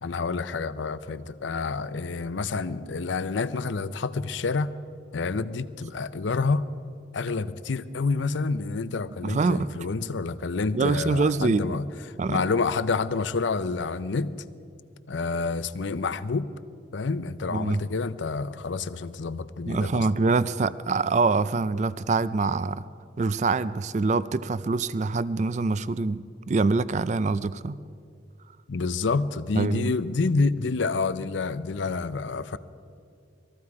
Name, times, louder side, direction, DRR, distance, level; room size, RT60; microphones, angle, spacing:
voice 1, 0.0-4.7 5.1-6.7 7.1-11.9 12.3-14.3 15.1-16.5 16.9-20.1 28.7-32.6, left 4 dB, 85° left, 14 dB, 0.6 m, -28 dB
voice 2, 9.2-9.7 10.7-11.8 12.2-12.4 17.5-17.8 19.7-22.9 23.2-27.8 29.6-29.9, right 3 dB, 40° right, 16 dB, 0.4 m, -25 dB
21.0 x 14.0 x 4.8 m, 2.4 s
head